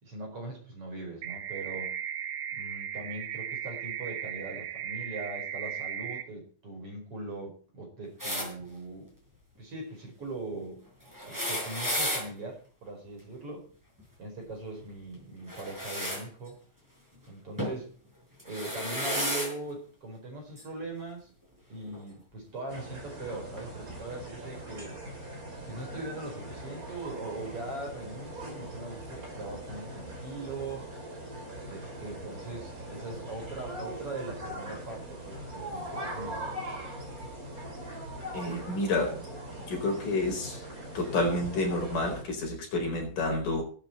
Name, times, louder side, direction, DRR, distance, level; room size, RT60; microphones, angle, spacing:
voice 1, 0.0-2.0 2.6-9.1 9.6-10.8 11.2-13.7 14.2-16.6 17.3-17.9 18.4-21.3 21.7-25.0 25.7-30.9 31.7-36.6, right 2 dB, 40° right, 2 dB, 5.4 m, -40 dB
sound 1, 1.2-6.2, right 9 dB, 70° right, 2.2 m, -36 dB
sound 2, 8.2-8.5 11.1-12.2 15.5-16.2 17.6-17.8 18.4-19.5 20.6-20.7 21.9-22.0, equal, 5° right, 5.6 m, -32 dB
sound 3, 22.7-42.2, right 1 dB, 25° right, 4.1 m, -41 dB
voice 2, 38.3-39.2 39.7-40.6 40.9-43.6, left 2 dB, 65° left, 1 dB, 6.0 m, -29 dB
19.5 x 9.2 x 4.3 m, 0.41 s
omnidirectional pair, 4.1 m